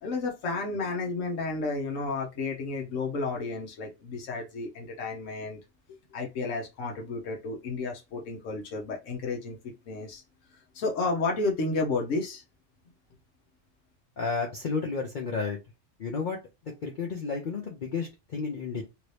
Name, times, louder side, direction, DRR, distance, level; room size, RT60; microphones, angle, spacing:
voice 1, 0.0-5.6 5.9-10.2 10.7-12.4, left 3 dB, 90° left, 1 dB, 1.2 m, -32 dB
voice 2, 14.2-15.6 16.0-16.4 16.8-18.8, left 4 dB, 50° left, 0 dB, 0.7 m, -31 dB
3.0 x 2.7 x 3.1 m, 0.25 s
omnidirectional pair, 1.3 m